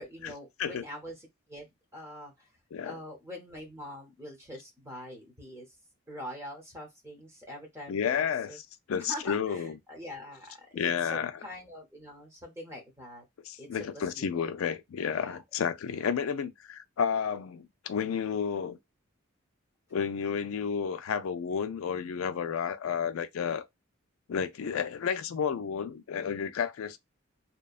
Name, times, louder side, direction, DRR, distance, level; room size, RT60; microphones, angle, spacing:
voice 1, 0.0-2.3 2.8-5.7 6.1-8.2 8.5-8.6 9.0-13.2 13.6-13.7 13.9-14.5 15.2-15.4, equal, 15° right, 0.8 m, -44 dB
voice 2, 7.9-8.6 8.9-9.8 10.7-11.3 13.5-18.8 19.9-23.7 24.3-27.0, left 7 dB, 75° left, 0.4 m, -31 dB
2.8 x 2.2 x 2.4 m
head